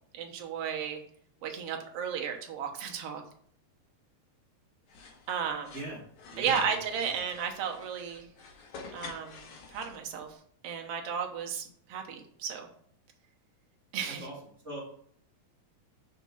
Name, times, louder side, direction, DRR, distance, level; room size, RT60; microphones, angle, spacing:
voice 1, 0.1-1.0 1.4-3.2 5.3-5.8 6.4-8.3 8.9-9.4 9.7-10.3 10.6-12.7 13.9-14.2, right 7 dB, 65° right, 2 dB, 1.7 m, -34 dB
sound 1, 4.9-10.2, left 5 dB, 75° left, 2.6 m, -46 dB
voice 2, 5.7-7.1 14.1-14.3 14.6-14.8, right 2 dB, 30° right, -3 dB, 1.6 m, -42 dB
5.2 x 4.7 x 5.5 m, 0.63 s
omnidirectional pair, 3.4 m